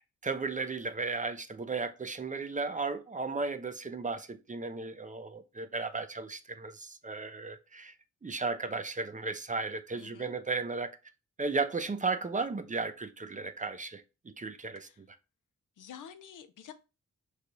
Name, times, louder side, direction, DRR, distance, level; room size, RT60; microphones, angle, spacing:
voice 1, 0.2-7.9 8.2-10.9 11.4-14.9, right 4 dB, 25° right, 0.5 m, -35 dB
voice 2, 10.0-10.3 14.8-15.0 15.8-16.7, left 8 dB, 90° left, 0.6 m, -49 dB
5.5 x 3.2 x 2.6 m
cardioid pair, 75°, 31 cm